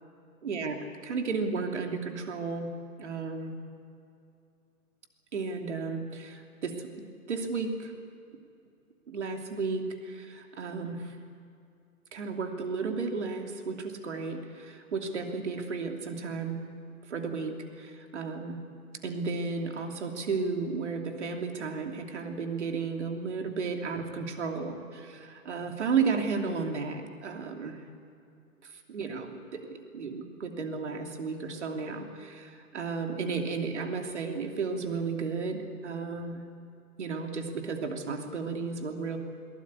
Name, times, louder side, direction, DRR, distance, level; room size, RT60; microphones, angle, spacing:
voice 1, 0.4-0.7 1.0-2.7 3.0-3.5 5.3-6.9 7.3-7.9 9.1-11.0 12.1-16.6 17.1-18.6 19.0-27.8 28.9-36.4 37.0-39.2, right 4 dB, 50° right, 4 dB, 3.0 m, -33 dB
22.0 x 20.0 x 9.7 m, 2.5 s
hypercardioid pair, 160°, 44 cm